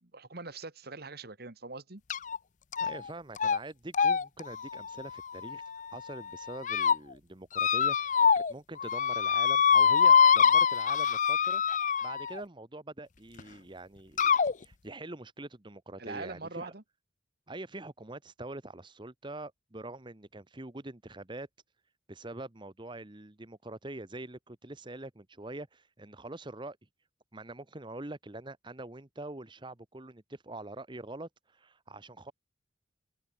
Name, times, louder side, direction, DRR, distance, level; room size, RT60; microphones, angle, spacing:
voice 1, 0.0-2.0 16.0-16.8, right 3 dB, 50° right, 1.9 m, -42 dB
sound 1, 2.1-2.4 2.7-3.1 3.4-3.6 3.9-5.9 6.4-7.0 7.5-8.5 8.8-12.4 13.4-13.5 14.2-14.5, left 7 dB, 40° left, 0.5 m, -25 dB
voice 2, 2.8-5.6 5.9-11.6 12.0-14.3 14.6-16.7 17.5-21.5 22.1-26.8 27.3-32.3, right 2 dB, 25° right, 1.1 m, -44 dB
head